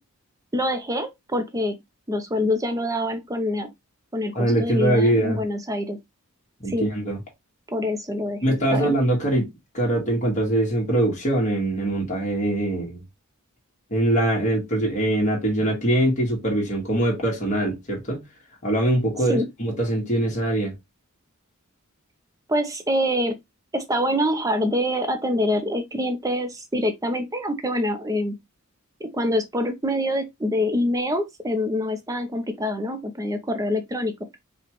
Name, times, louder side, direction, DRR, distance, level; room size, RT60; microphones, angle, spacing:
voice 1, 0.5-1.7 2.1-3.7 4.1-6.0 6.7-6.9 7.7-8.9 19.3-19.5 22.5-23.3 23.7-28.4 29.0-34.4, left 1 dB, 15° right, 0.7 m, -25 dB
voice 2, 4.3-5.4 6.6-7.2 8.4-9.5 9.7-13.0 13.9-18.2 18.6-20.7, right 1 dB, 35° left, 1.6 m, -22 dB
4.9 x 2.4 x 3.0 m
head